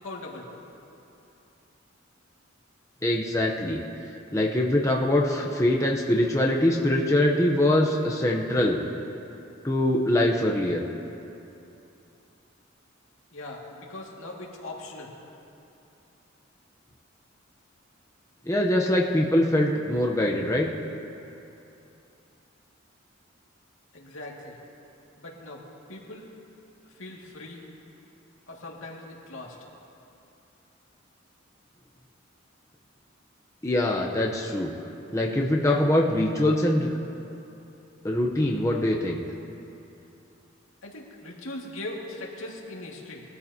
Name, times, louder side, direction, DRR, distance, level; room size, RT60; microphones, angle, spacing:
voice 1, 0.0-0.5 13.3-15.1 23.9-24.6 25.2-25.6 25.9-26.3 26.9-27.6 28.5-29.6 35.6-35.9 40.8-43.2, left 2 dB, 85° left, -2 dB, 2.1 m, -40 dB
voice 2, 3.0-3.8 4.3-8.8 9.6-10.8 18.5-20.7 33.6-34.7 35.1-36.9 38.0-39.2, left 1 dB, 15° left, -1 dB, 0.7 m, -23 dB
22.0 x 13.0 x 2.8 m, 2.8 s
head